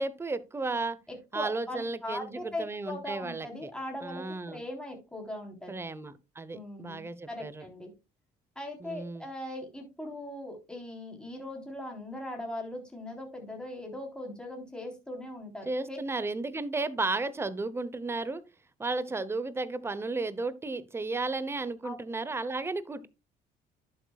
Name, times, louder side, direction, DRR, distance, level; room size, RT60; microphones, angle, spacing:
voice 1, 0.0-1.0 1.3-3.7 4.0-4.6 5.7-7.6 8.8-9.2 15.6-18.4 18.8-23.1, right 3 dB, 15° right, 15 dB, 0.8 m, -34 dB
voice 2, 1.1-5.7 6.5-7.9 8.6-16.0 21.8-22.0, left 1 dB, 5° left, 1 dB, 3.7 m, -40 dB
11.0 x 8.1 x 2.3 m, 0.27 s
cardioid pair, 110°, 17 cm